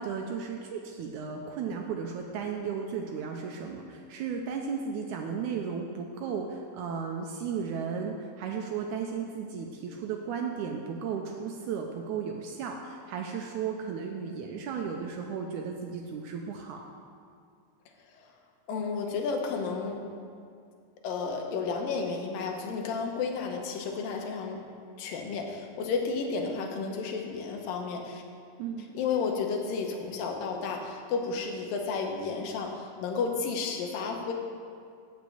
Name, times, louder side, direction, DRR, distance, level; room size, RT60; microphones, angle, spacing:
voice 1, 0.0-16.8 28.6-28.9, right 6 dB, 80° right, 2 dB, 1.8 m, -35 dB
voice 2, 18.7-20.0 21.0-24.6 25.0-28.2 28.9-34.3, left 5 dB, 80° left, 2 dB, 2.7 m, -32 dB
8.4 x 6.2 x 7.8 m, 2.3 s
omnidirectional pair, 4.0 m